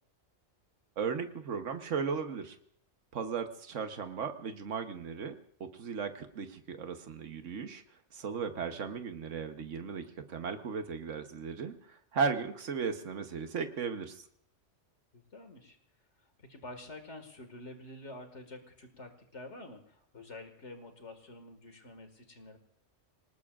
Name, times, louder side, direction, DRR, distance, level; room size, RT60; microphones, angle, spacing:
voice 1, 1.0-2.6 3.1-7.8 8.1-14.2, right 5 dB, 80° right, 7 dB, 1.5 m, -36 dB
voice 2, 8.2-8.7 15.1-15.8 16.4-22.6, left 2 dB, 70° left, 6 dB, 2.3 m, -48 dB
27.0 x 19.5 x 2.5 m, 0.63 s
omnidirectional pair, 1.3 m